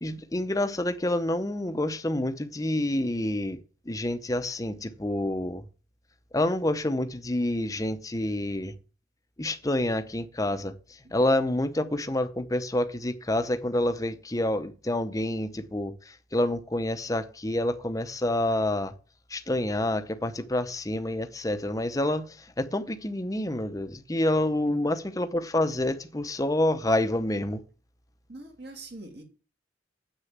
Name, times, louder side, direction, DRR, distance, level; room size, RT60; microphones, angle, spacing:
voice 1, 0.0-3.6 3.9-5.6 6.3-8.7 9.4-18.9 19.3-27.6, left 1 dB, 20° left, 0.7 m, -28 dB
voice 2, 28.3-29.2, right 2 dB, 60° right, 2.7 m, -43 dB
8.2 x 6.6 x 7.4 m
head